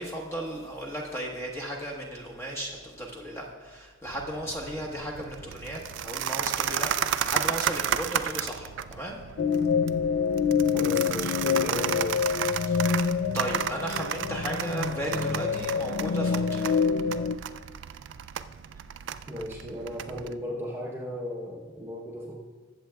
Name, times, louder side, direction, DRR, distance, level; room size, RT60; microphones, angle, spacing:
voice 1, 0.0-9.2 12.7-13.1 13.3-16.6, right 1 dB, 15° left, -1 dB, 1.2 m, -35 dB
sound 1, 4.1-20.3, right 9 dB, 65° right, 0.3 m, -33 dB
sound 2, 9.4-17.4, left 6 dB, 65° left, 0.3 m, -27 dB
voice 2, 10.7-12.2 19.3-22.4, equal, 10° right, -3 dB, 0.8 m, -35 dB
20.5 x 7.5 x 2.3 m, 1.4 s
head